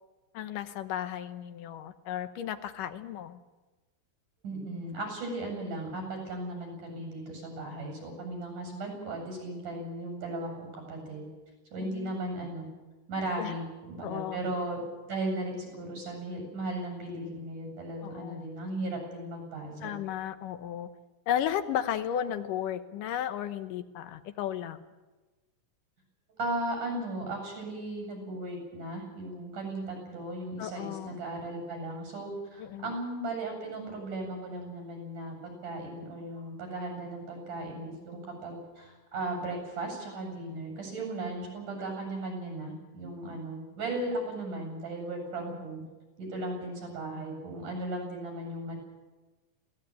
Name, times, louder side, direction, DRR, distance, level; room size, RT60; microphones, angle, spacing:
voice 1, 0.3-3.4 11.8-12.2 13.4-13.6 14.0-14.4 18.0-18.5 19.8-20.9 21.3-24.8 30.6-31.2 32.6-32.9, left 10 dB, 85° left, 10 dB, 2.7 m, -34 dB
voice 2, 4.4-11.3 11.7-12.7 13.1-14.8 15.1-19.9 26.3-45.8 46.2-48.8, right 2 dB, 70° right, 2 dB, 9.0 m, -36 dB
22.0 x 17.5 x 9.1 m, 1.2 s
omnidirectional pair, 3.7 m